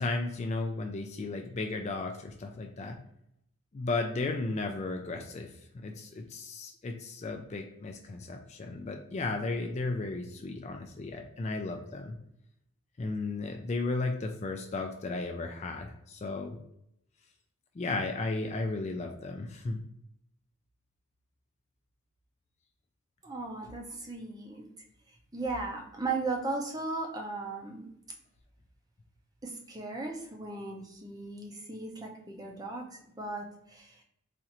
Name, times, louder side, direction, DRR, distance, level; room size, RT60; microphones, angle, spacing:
voice 1, 0.0-3.0 3.7-12.2 13.0-16.6 17.8-19.8, left 3 dB, 30° left, 4 dB, 0.3 m, -34 dB
voice 2, 23.2-24.7 25.3-27.9 29.4-34.0, right 3 dB, 15° right, 1 dB, 0.5 m, -37 dB
4.2 x 2.5 x 2.8 m, 0.77 s
head